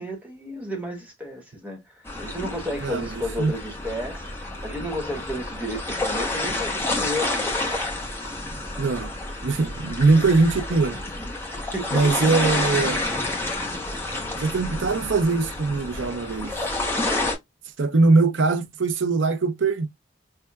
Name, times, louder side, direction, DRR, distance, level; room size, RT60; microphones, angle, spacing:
voice 1, 0.0-1.8 2.2-7.4 10.9-11.3 11.7-12.0, equal, 10° right, 1.1 m, -32 dB
sound 1, 2.1-17.4, left 2 dB, 15° left, 0.9 m, -29 dB
voice 2, 2.8-3.5 8.8-9.1 9.4-11.0 11.9-13.2 14.3-16.6 17.8-19.9, right 3 dB, 85° right, 0.6 m, -21 dB
5.5 x 2.3 x 2.2 m
head